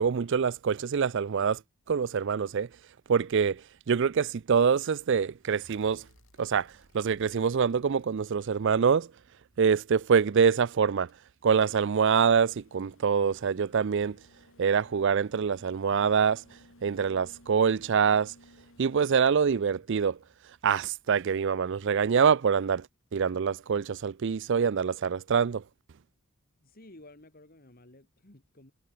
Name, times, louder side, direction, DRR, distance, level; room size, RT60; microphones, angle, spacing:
voice 1, 0.0-1.6 1.9-2.7 3.1-3.6 3.9-6.0 6.4-6.7 6.9-9.1 9.6-11.1 11.4-14.2 14.6-16.4 16.8-18.3 18.8-20.2 20.6-22.8 23.1-25.6, right 6 dB, 55° right, 0.4 m, -25 dB
sound 1, 5.6-9.8 11.1-22.3 23.8-23.9, left 1 dB, 60° left, 7.8 m, -60 dB
voice 2, 26.6-28.7, left 1 dB, 40° left, 2.6 m, -53 dB
head